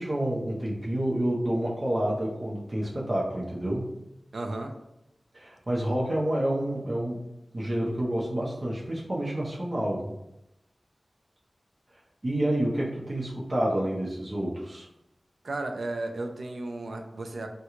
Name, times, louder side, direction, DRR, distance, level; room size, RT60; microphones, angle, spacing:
voice 1, 0.0-3.9 5.3-7.2 7.5-10.1 12.2-14.9, right 1 dB, 40° right, -5 dB, 0.7 m, -28 dB
voice 2, 4.3-4.7 15.4-17.5, right 2 dB, 75° right, 5 dB, 0.4 m, -34 dB
3.0 x 2.2 x 3.6 m, 0.88 s
wide cardioid pair, 70°, 0 cm